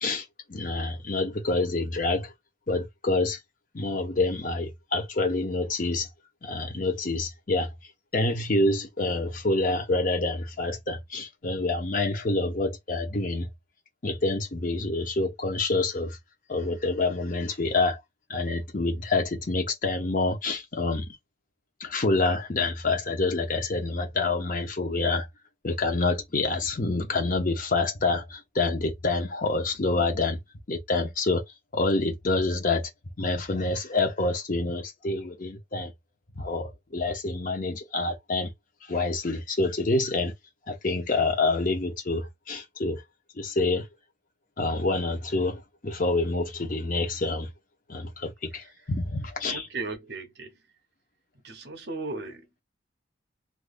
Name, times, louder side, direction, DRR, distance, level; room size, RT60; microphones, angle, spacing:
voice 1, 0.0-2.3 2.7-3.4 3.7-6.1 6.4-7.7 8.1-13.5 14.0-16.2 16.5-18.0 18.3-21.2 21.8-25.3 25.6-30.4 30.7-31.4 31.7-32.9 33.2-35.9 36.4-38.5 38.9-40.3 40.7-43.0 43.4-43.9 44.6-47.5 47.9-49.7, left 2 dB, 45° left, 0.7 m, -27 dB
voice 2, 49.5-50.5 51.4-52.4, right 3 dB, 60° right, 0.9 m, -36 dB
3.4 x 2.6 x 2.5 m
head